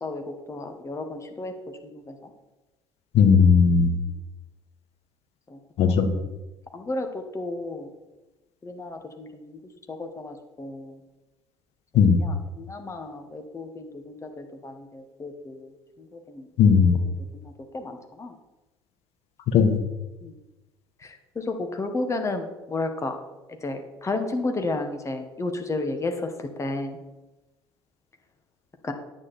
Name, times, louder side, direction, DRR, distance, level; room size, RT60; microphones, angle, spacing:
voice 1, 0.0-1.5 1.8-2.3 5.5-5.6 5.9-6.3 6.7-7.9 8.6-9.6 9.9-11.0 12.2-16.5 16.9-17.0 17.4-18.3 20.2-20.3 21.0-23.1 23.6-27.0 28.8-28.9, left 2 dB, 20° left, 5 dB, 1.7 m, -33 dB
voice 2, 3.1-3.9 5.8-6.1 11.9-12.2 16.6-17.0 19.5-19.8, left 6 dB, 50° left, 7 dB, 1.3 m, -17 dB
9.6 x 8.8 x 4.4 m, 1.0 s
figure-of-eight pair, 60°, 13 cm